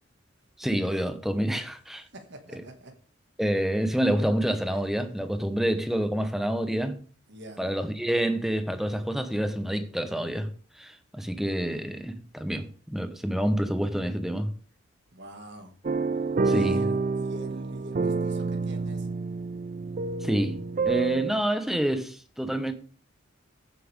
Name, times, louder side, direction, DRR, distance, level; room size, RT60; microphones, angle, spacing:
voice 1, 0.6-2.0 2.5-2.6 3.4-7.0 7.6-10.5 10.8-14.5 16.4-16.8 20.2-20.6 20.9-22.7, right 1 dB, ahead, 1.0 m, -28 dB
voice 2, 2.1-2.9 7.3-7.7 15.1-15.8 16.5-16.9 17.2-19.1, right 1 dB, 55° right, 2.1 m, -43 dB
sound 1, 15.8-21.3, right 4 dB, 40° right, 0.4 m, -28 dB
15.0 x 7.7 x 3.6 m
head